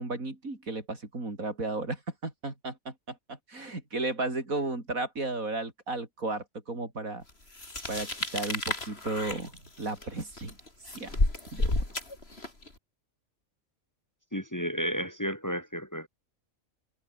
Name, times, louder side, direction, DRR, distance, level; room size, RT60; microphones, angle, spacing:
voice 1, 0.0-7.2 7.9-10.6 10.9-11.2 11.5-11.8, right 2 dB, 85° right, 5.3 m, -34 dB
sound 1, 7.5-12.7, left 2 dB, 45° left, 4.6 m, -31 dB
voice 2, 14.3-16.1, equal, 10° left, 5.3 m, -32 dB
omnidirectional pair, 1.4 m